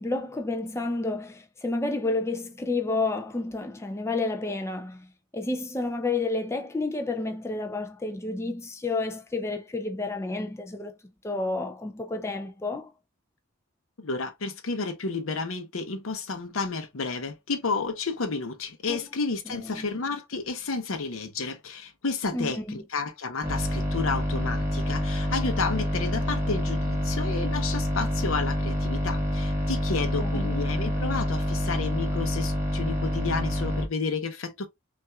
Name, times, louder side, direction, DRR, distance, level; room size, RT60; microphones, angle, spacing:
voice 1, 0.0-5.1 5.3-10.9 11.2-12.9 18.9-19.0 19.5-19.9 22.3-22.8 30.2-30.5, left 3 dB, 15° left, 0.5 m, -30 dB
voice 2, 14.0-34.7, left 4 dB, 80° left, 0.8 m, -31 dB
sound 1, 23.4-33.8, equal, 10° right, 1.2 m, -27 dB
5.5 x 2.5 x 2.2 m
head